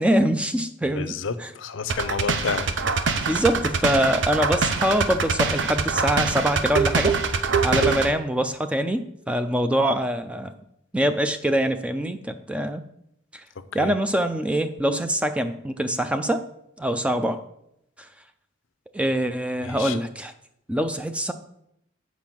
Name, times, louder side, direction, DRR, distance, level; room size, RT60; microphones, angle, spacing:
voice 1, 0.0-1.5 3.2-7.2 7.6-10.5 10.9-12.8 13.3-13.4 13.7-16.4 16.8-17.4 18.0-18.1 18.9-20.3 20.7-21.3, equal, 5° right, 9 dB, 0.4 m, -24 dB
voice 2, 1.0-2.7 7.7-8.0 13.8-13.9 19.6-20.0, left 5 dB, 75° left, 13 dB, 0.6 m, -30 dB
sound 1, 1.9-8.1, right 5 dB, 65° right, 0.6 m, -24 dB
7.3 x 4.8 x 6.0 m, 0.77 s
head